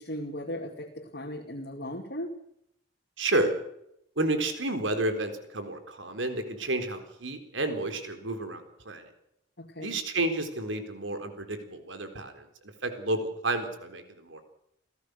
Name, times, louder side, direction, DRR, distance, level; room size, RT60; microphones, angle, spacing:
voice 1, 0.0-2.3 9.6-10.0, equal, 55° left, 0 dB, 2.4 m, -37 dB
voice 2, 3.2-3.6 4.2-9.1 9.8-12.5 12.8-14.4, right 2 dB, 90° right, 7 dB, 4.0 m, -31 dB
29.0 x 17.0 x 6.5 m, 0.79 s
head